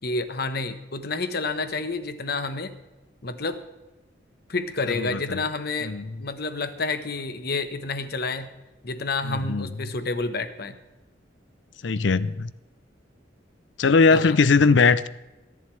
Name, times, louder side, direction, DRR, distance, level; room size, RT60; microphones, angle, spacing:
voice 1, 0.0-2.7 3.2-3.6 4.5-5.9 6.2-8.5 8.8-10.8 14.1-14.4, left 3 dB, 60° left, 10 dB, 1.1 m, -29 dB
voice 2, 5.0-5.4 5.8-6.2 9.2-9.7 11.8-12.5 13.8-15.1, left 4 dB, 85° left, 16 dB, 0.6 m, -20 dB
23.0 x 11.0 x 3.2 m, 1.1 s
head